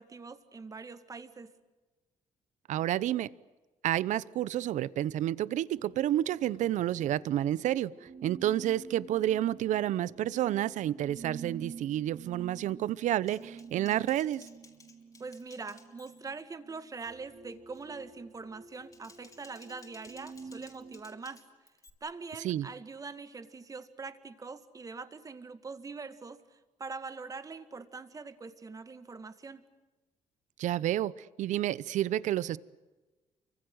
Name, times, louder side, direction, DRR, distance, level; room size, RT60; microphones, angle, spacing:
voice 1, 0.0-1.5 15.2-21.4 22.0-26.4 26.8-29.6, right 4 dB, 25° right, 10 dB, 2.1 m, -43 dB
voice 2, 2.7-3.3 3.8-14.5 22.4-22.7 30.6-32.6, right 12 dB, 75° right, 19 dB, 0.9 m, -30 dB
sound 1, 5.7-21.0, right 5 dB, 45° right, 5.5 m, -49 dB
Typing, 13.3-16.4 16.8-17.1 17.5-17.9 18.7-21.9, left 3 dB, 30° left, 4.0 m, -58 dB
29.0 x 25.0 x 7.9 m, 1.2 s
cardioid pair, 120°, 13 cm